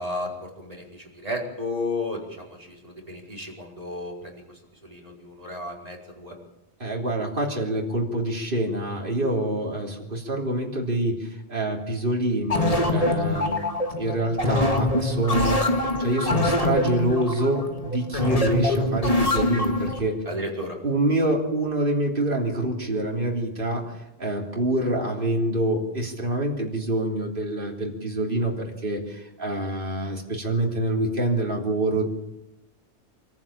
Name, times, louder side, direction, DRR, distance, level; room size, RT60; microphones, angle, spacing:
voice 1, 0.0-6.4 20.2-20.8, left 2 dB, 35° right, -2 dB, 5.2 m, -33 dB
voice 2, 6.8-13.6 13.9-20.2 20.8-23.8 24.2-28.5 28.8-32.0, right 1 dB, 50° right, -1 dB, 3.7 m, -26 dB
sound 1, 12.5-20.0, left 2 dB, 35° left, 2.4 m, -24 dB
25.5 x 14.5 x 8.8 m, 0.93 s
omnidirectional pair, 1.1 m